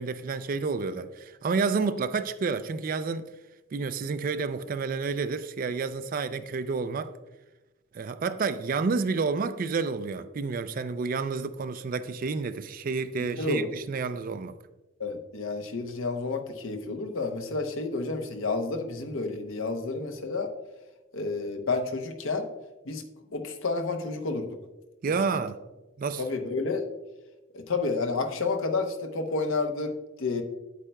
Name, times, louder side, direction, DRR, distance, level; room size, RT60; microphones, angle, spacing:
voice 1, 0.0-3.3 3.7-7.1 7.9-14.5 25.0-25.6 26.0-26.2, right 4 dB, 40° right, 0.3 m, -30 dB
voice 2, 13.2-13.7 15.0-20.5 21.1-22.5 22.9-23.0 23.3-24.5 26.2-26.8 27.5-30.4, left 3 dB, 70° left, 0.8 m, -30 dB
8.8 x 8.2 x 2.2 m
head